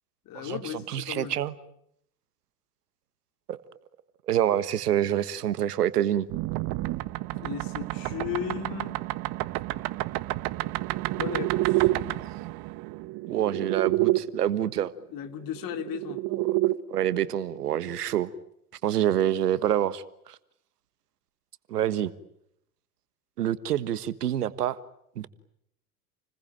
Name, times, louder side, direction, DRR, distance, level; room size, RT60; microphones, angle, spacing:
voice 1, 0.2-1.4 7.3-9.0 11.2-11.9 15.1-16.2, left 10 dB, 45° left, 2.8 m, -35 dB
voice 2, 0.9-1.5 3.5-3.6 4.3-6.3 13.3-14.9 16.3-16.6 16.9-18.3 18.8-20.4 21.7-22.1 23.4-24.8 25.1-25.3, right 11 dB, 80° right, 1.5 m, -27 dB
sound 1, 6.3-14.2 15.5-16.7, right 18 dB, 50° right, 1.3 m, -29 dB
29.5 x 21.0 x 9.1 m
hypercardioid pair, 85°, 46 cm